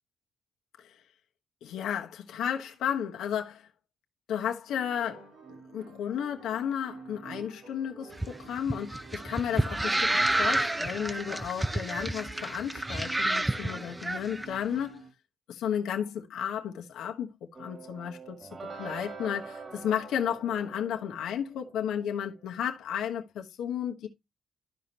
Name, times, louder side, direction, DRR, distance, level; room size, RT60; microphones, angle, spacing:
voice 1, 1.6-3.7 4.3-15.0 15.5-18.5 18.8-24.1, left 9 dB, 80° left, 1.2 m, -33 dB
sound 1, 4.7-15.1, right 4 dB, 75° right, 3.6 m, -49 dB
sound 2, 8.1-14.5, right 1 dB, 15° right, 0.6 m, -29 dB
sound 3, 17.5-22.5, right 4 dB, 40° right, 2.5 m, -45 dB
12.5 x 5.2 x 2.9 m
cardioid pair, 70°, 0 cm